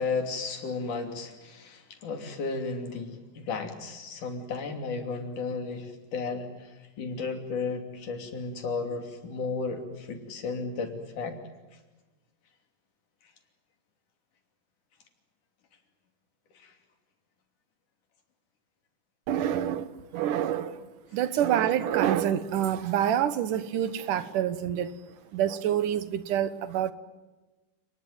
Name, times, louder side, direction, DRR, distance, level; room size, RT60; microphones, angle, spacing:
voice 1, 0.0-11.4 16.5-16.7, left 4 dB, 70° left, 5 dB, 4.4 m, -34 dB
voice 2, 19.3-24.9 25.3-26.9, right 10 dB, 80° right, 13 dB, 2.8 m, -27 dB
29.5 x 20.0 x 9.4 m, 1.1 s
omnidirectional pair, 3.7 m